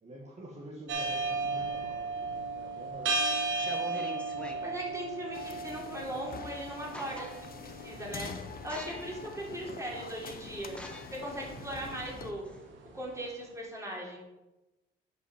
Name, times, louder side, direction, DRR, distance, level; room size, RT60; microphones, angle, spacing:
voice 1, 0.0-4.1 9.6-9.8, right 1 dB, 35° right, -3 dB, 1.5 m, -48 dB
sound 1, 0.9-13.0, right 3 dB, 70° right, 1.3 m, -36 dB
sound 2, 2.5-2.9 3.4-4.7 6.3-6.4 6.7-7.6 8.1-8.3 8.7-9.3 9.8-9.9 10.7-13.0, equal, 5° left, 1.2 m, -45 dB
voice 2, 4.6-8.3 8.6-10.8 11.1-12.4 12.9-14.2, right 1 dB, 15° right, -3 dB, 3.2 m, -39 dB
sound 3, 5.3-12.3, left 6 dB, 50° left, 0.8 m, -46 dB
8.7 x 5.2 x 5.0 m, 1.0 s
cardioid pair, 90°, 20 cm